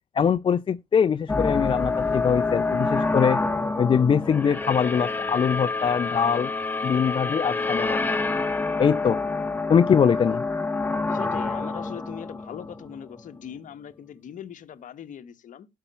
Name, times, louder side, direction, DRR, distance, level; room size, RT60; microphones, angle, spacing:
voice 1, 0.1-3.4 3.8-6.5 6.8-8.0 8.8-9.2 9.7-10.4, left 7 dB, 30° left, 0.4 m, -22 dB
sound 1, 1.3-13.4, left 3 dB, 10° left, 0.9 m, -27 dB
voice 2, 11.1-15.7, left 9 dB, 50° left, 1.1 m, -40 dB
11.5 x 5.6 x 5.5 m
cardioid pair, 110°, 17 cm